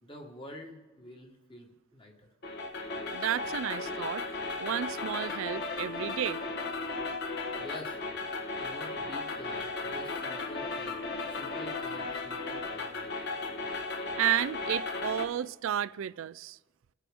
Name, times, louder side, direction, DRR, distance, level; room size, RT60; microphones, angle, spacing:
voice 1, 0.0-2.3 7.6-8.0 8.6-11.0 11.3-13.1, left 1 dB, 25° left, 1.5 m, -47 dB
sound 1, 2.4-15.3, left 3 dB, 50° left, 1.3 m, -35 dB
voice 2, 3.1-4.2 4.6-6.4 14.2-16.6, right 10 dB, 80° right, 0.3 m, -32 dB
23.0 x 10.0 x 3.6 m
head